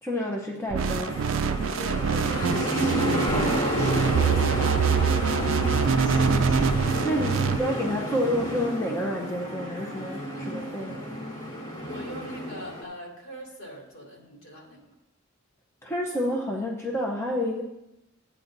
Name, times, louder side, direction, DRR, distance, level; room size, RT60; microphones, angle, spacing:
voice 1, 0.0-1.2 7.0-11.0 15.8-17.6, left 1 dB, 10° left, -1 dB, 0.7 m, -29 dB
sound 1, 0.7-7.6, right 6 dB, 65° right, 0.3 m, -25 dB
sound 2, 0.8-12.8, equal, 35° left, 1.6 m, -30 dB
voice 2, 1.8-5.2 11.8-14.9, equal, 60° left, -2 dB, 2.8 m, -41 dB
12.5 x 8.8 x 2.6 m, 0.91 s
head